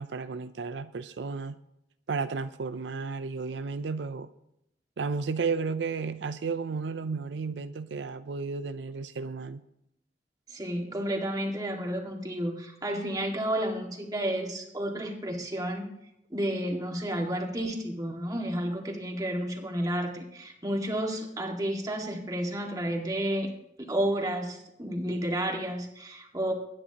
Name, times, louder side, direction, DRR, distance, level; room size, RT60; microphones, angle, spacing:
voice 1, 0.0-1.6 2.1-4.3 5.0-9.6, right 4 dB, 85° right, 0.5 m, -33 dB
voice 2, 10.5-15.9 16.3-23.5 23.8-26.5, right 1 dB, 20° right, 1.9 m, -31 dB
20.5 x 9.8 x 2.9 m
head